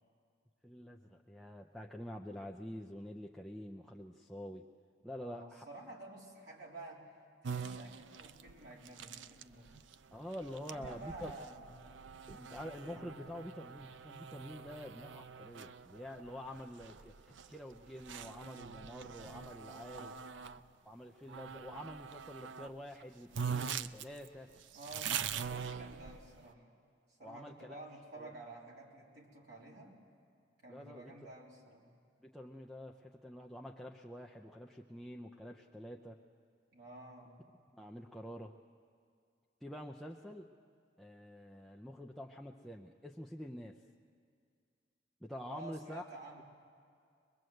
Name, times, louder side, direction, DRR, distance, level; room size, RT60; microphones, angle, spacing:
voice 1, 0.6-4.7 5.0-5.6 10.1-11.3 12.3-20.1 20.8-24.5 27.2-27.8 28.2-28.3 30.7-31.1 32.2-36.2 37.7-38.6 39.6-40.5 41.0-43.8 45.2-46.1, equal, ahead, 0 dB, 0.6 m, -47 dB
voice 2, 5.2-7.1 7.4-9.7 10.7-11.7 19.9-20.5 24.7-26.7 27.2-30.0 30.6-31.9 36.7-37.4 45.5-46.4, right 2 dB, 60° right, -3 dB, 3.6 m, -51 dB
sound 1, 7.4-20.6 21.3-22.7 23.0-23.1 23.3-26.4, right 7 dB, 75° right, 0.5 m, -44 dB
23.0 x 22.0 x 7.9 m, 2.3 s
head